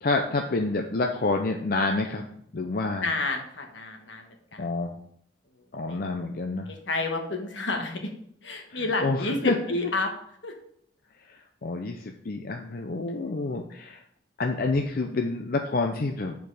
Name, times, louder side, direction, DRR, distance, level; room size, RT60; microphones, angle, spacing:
voice 1, 0.0-2.2 2.5-3.1 4.6-4.9 5.7-6.7 8.7-9.5 11.6-14.0 14.4-16.3, left 3 dB, 50° left, 3 dB, 0.6 m, -28 dB
voice 2, 3.0-4.6 5.9-6.0 6.7-8.1 8.4-10.1 10.4-10.5, left 2 dB, 80° left, 3 dB, 1.4 m, -30 dB
7.9 x 4.6 x 4.8 m, 0.68 s
head